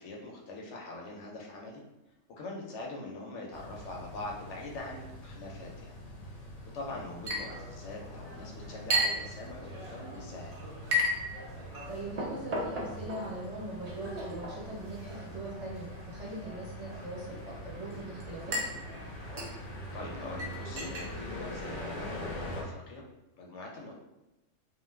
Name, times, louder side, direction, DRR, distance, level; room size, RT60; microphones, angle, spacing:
voice 1, 0.0-1.8 2.3-5.9 6.7-10.5 19.9-23.0 23.4-23.9, left 2 dB, 75° left, -1 dB, 0.9 m, -43 dB
sound 1, 3.5-22.6, left 1 dB, 50° left, 0.4 m, -44 dB
voice 2, 6.9-7.2 11.9-18.6, right 1 dB, 30° right, -8 dB, 0.9 m, -41 dB
Chink clink, 7.3-22.3, equal, 55° right, 0.4 m, -37 dB
2.5 x 2.3 x 3.2 m, 0.98 s
omnidirectional pair, 1.3 m